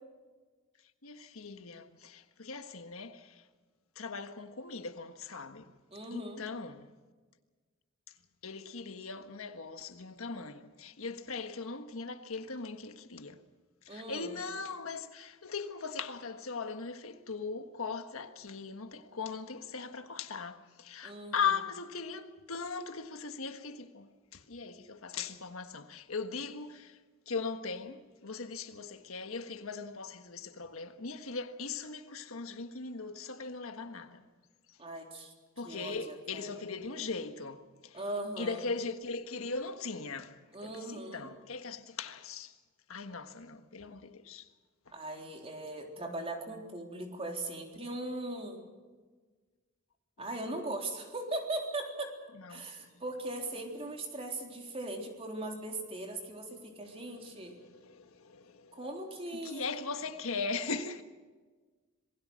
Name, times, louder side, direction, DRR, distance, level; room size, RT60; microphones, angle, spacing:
voice 1, 1.0-3.4 3.9-5.7 6.1-6.9 8.4-13.4 13.8-27.0 27.3-34.2 35.6-38.0 38.4-42.5 42.9-44.4 50.2-50.3 52.4-52.7 57.0-58.8 59.4-61.0, left 4 dB, 75° left, 1.5 m, -39 dB
voice 2, 5.9-6.4 13.9-14.4 21.0-21.5 34.8-35.3 35.6-36.7 37.9-38.6 40.5-41.3 44.9-48.6 50.2-52.1 52.5-57.5 58.7-59.7, right 2 dB, 30° right, 3.7 m, -39 dB
27.0 x 21.0 x 6.4 m
head